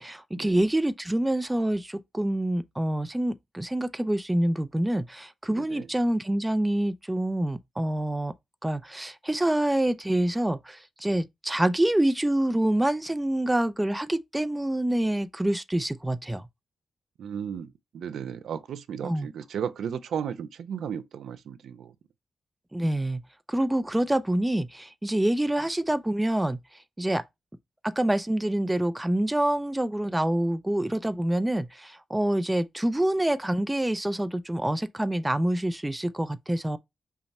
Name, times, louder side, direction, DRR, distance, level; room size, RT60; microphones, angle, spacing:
voice 1, 0.0-8.3 8.6-16.4 19.0-19.3 22.7-23.2 23.5-26.6 27.0-27.2 27.8-36.8, right 1 dB, 10° right, 0.4 m, -26 dB
voice 2, 5.5-5.9 17.2-21.9, right 8 dB, 90° right, 0.4 m, -35 dB
5.7 x 2.1 x 4.1 m
cardioid pair, 85°, 0 cm